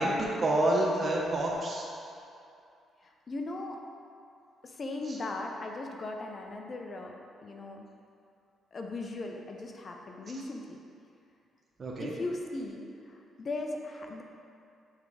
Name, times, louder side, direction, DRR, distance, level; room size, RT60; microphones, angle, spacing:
voice 1, 0.0-1.9 5.1-5.2 11.8-12.1, right 1 dB, 40° right, -3 dB, 0.9 m, -28 dB
voice 2, 3.0-3.8 4.6-7.2 7.4-7.9 8.7-10.8 12.0-14.2, left 2 dB, 40° left, 2 dB, 0.7 m, -38 dB
7.3 x 3.6 x 4.8 m, 2.5 s
cardioid pair, 90°, 0 cm